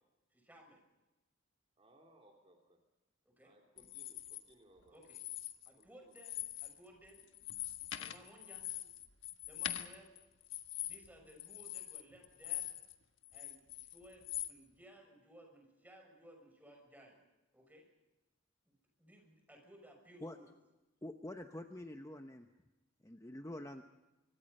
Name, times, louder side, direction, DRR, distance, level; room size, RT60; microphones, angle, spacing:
voice 1, 0.3-0.8 3.2-3.5 4.9-5.2 5.6-7.3 8.0-8.7 9.4-10.1 10.8-12.7 13.3-17.1 17.5-17.8 19.0-20.5, equal, 10° right, 2 dB, 6.4 m, -59 dB
voice 2, 1.8-2.8 3.4-5.0 5.8-6.2, right 1 dB, 30° right, 1 dB, 2.9 m, -65 dB
sound 1, 3.8-4.4 5.0-5.8 6.1-6.8 7.1-12.9 13.2-14.5, left 12 dB, 70° left, 1.4 m, -43 dB
voice 3, 21.0-22.5 23.0-23.8, left 1 dB, 15° left, 6 dB, 0.9 m, -46 dB
26.0 x 24.0 x 5.5 m, 1.0 s
head